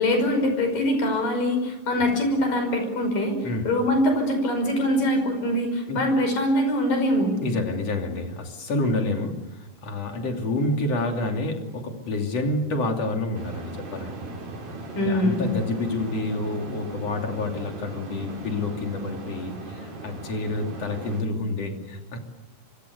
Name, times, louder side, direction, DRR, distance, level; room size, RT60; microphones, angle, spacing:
voice 1, 0.0-3.4 3.7-7.4 14.9-15.5, left 1 dB, 80° left, 6 dB, 7.3 m, -23 dB
voice 2, 7.4-14.1 15.0-22.2, left 2 dB, 50° left, 3 dB, 3.9 m, -28 dB
sound 1, 13.3-21.2, right 2 dB, 90° right, 6.5 m, -38 dB
25.0 x 24.0 x 8.3 m, 1.0 s
omnidirectional pair, 3.9 m